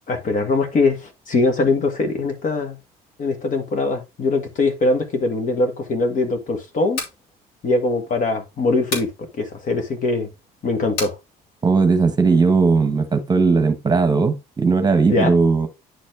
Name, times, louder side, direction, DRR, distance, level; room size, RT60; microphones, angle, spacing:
voice 1, 0.1-2.8 3.2-7.0 7.6-10.3 10.6-11.2 15.1-15.3, left 3 dB, 50° left, 1.9 m, -22 dB
sound 1, 6.9-7.2 8.9-9.2 11.0-11.2, left 2 dB, 70° left, 3.2 m, -28 dB
voice 2, 11.6-15.7, right 4 dB, 25° right, 1.3 m, -17 dB
10.0 x 4.2 x 3.4 m
cardioid pair, 110°, 17 cm